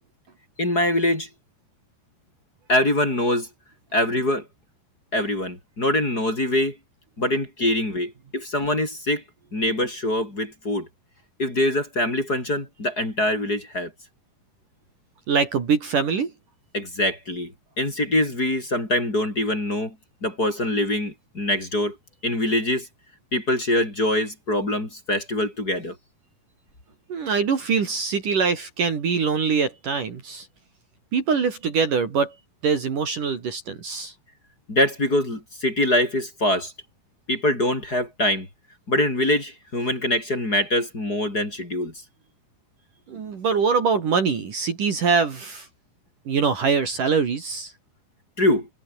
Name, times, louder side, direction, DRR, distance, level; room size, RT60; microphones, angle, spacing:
voice 1, 0.6-1.3 2.7-3.5 3.9-4.5 5.1-6.8 7.2-9.2 9.5-10.9 11.4-13.9 16.7-17.5 17.8-20.0 20.2-22.0 22.2-22.9 23.3-26.0 34.7-36.7 37.3-38.5 38.9-41.9 48.4-48.7, left 1 dB, 20° left, 5.5 m, -24 dB
voice 2, 15.3-16.3 27.1-30.5 31.1-32.4 32.6-34.1 43.1-45.7 46.3-47.7, right 5 dB, 50° right, 4.3 m, -23 dB
omnidirectional pair, 5.2 m